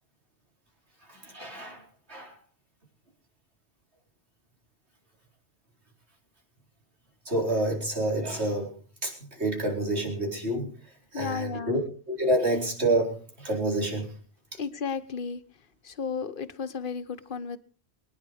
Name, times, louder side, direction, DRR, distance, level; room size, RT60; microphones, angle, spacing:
voice 1, 1.1-1.8 2.1-2.4 7.2-8.8 9.0-10.7 11.1-11.8 12.1-14.1 14.5-14.6, right 1 dB, 85° right, 1 dB, 4.7 m, -28 dB
voice 2, 11.1-11.8 14.6-15.4 15.8-17.6, left 6 dB, 55° left, 11 dB, 1.2 m, -33 dB
23.5 x 9.9 x 4.9 m, 0.41 s
omnidirectional pair, 1.1 m